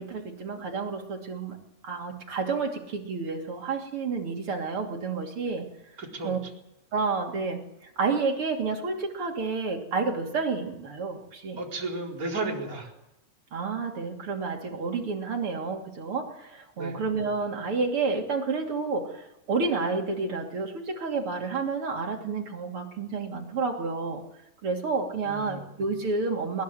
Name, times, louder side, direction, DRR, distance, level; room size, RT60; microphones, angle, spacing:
voice 1, 0.0-1.6 1.8-5.7 6.2-6.4 6.9-11.6 13.5-24.2 24.6-26.6, right 4 dB, 45° right, 2 dB, 3.5 m, -30 dB
voice 2, 6.0-6.4 11.6-12.9 16.8-17.0 25.2-25.6, right 2 dB, 25° right, -2 dB, 4.6 m, -33 dB
21.5 x 20.0 x 7.9 m, 0.86 s
omnidirectional pair, 3.5 m